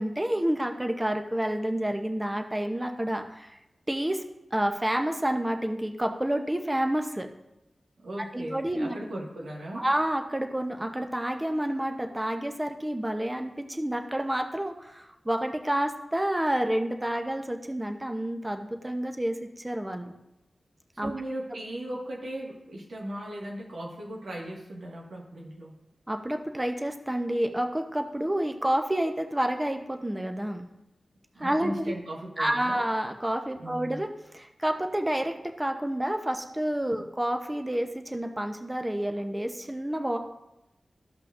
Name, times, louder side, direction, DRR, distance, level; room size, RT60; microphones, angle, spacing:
voice 1, 0.0-3.6 3.9-4.2 4.5-7.3 8.3-9.0 9.7-20.1 21.0-21.1 26.1-30.7 31.4-31.9 32.4-34.1 34.3-40.2, right 1 dB, 15° right, 4 dB, 0.8 m, -29 dB
voice 2, 8.0-9.9 20.9-25.8 31.3-32.8 33.6-34.0, right 1 dB, 90° right, -3 dB, 1.7 m, -37 dB
14.5 x 5.6 x 2.5 m, 0.92 s
cardioid pair, 45°, 0 cm